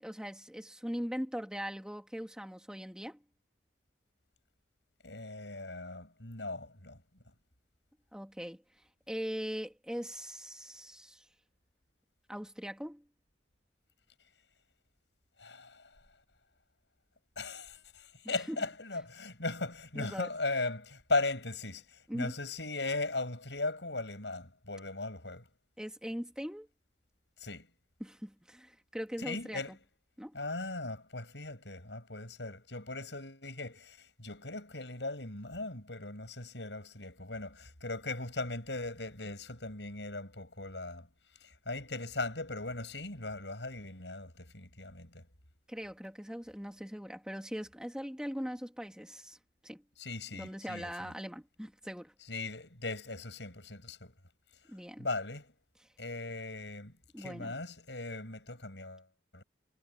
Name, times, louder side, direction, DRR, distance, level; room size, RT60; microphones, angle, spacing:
voice 1, 0.0-3.2 8.1-8.6 9.1-11.2 12.3-13.0 18.2-18.6 20.0-20.3 22.1-22.3 25.8-26.7 28.0-29.6 30.2-30.4 45.7-49.4 49.6-49.8 50.3-52.1 54.7-55.1 55.8-55.9 57.1-57.6, equal, 5° right, 2.5 m, -40 dB
voice 2, 5.0-7.0 15.4-15.9 17.4-25.4 27.4-27.7 29.2-29.8 30.3-41.1 41.4-45.2 50.0-51.1 52.3-54.1 55.0-55.5 56.0-59.1 59.3-59.4, left 2 dB, 85° left, 7.4 m, -38 dB
head